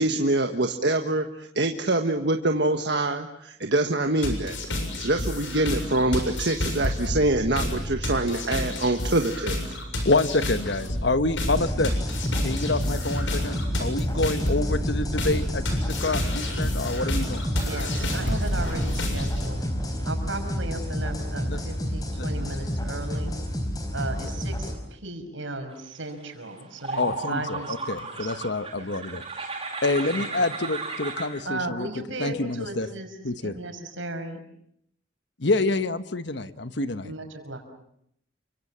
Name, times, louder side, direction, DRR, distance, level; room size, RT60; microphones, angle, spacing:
voice 1, 0.0-4.6 5.0-9.6, right 2 dB, 60° right, 5 dB, 1.5 m, -25 dB
sound 1, 4.2-19.5, left 1 dB, 75° left, 7.2 m, -30 dB
voice 2, 10.0-11.9 12.4-15.6 16.0-17.5 21.5-21.6 22.2-22.5 27.0-29.2 29.8-31.9 32.2-32.9 33.2-33.5 35.4-37.1, left 2 dB, 60° left, 11 dB, 1.3 m, -27 dB
sound 2, 11.5-24.7, equal, 20° left, 4.6 m, -29 dB
voice 3, 14.4-14.9 17.5-19.6 20.0-23.4 23.9-27.9 28.2-28.5 28.8-28.9 30.2-30.3 31.4-34.4 37.0-37.6, right 2 dB, 80° right, 6 dB, 5.7 m, -36 dB
sound 3, 26.2-26.3 26.8-31.3, right 3 dB, 25° right, 7.0 m, -34 dB
29.5 x 25.0 x 7.5 m, 0.72 s
head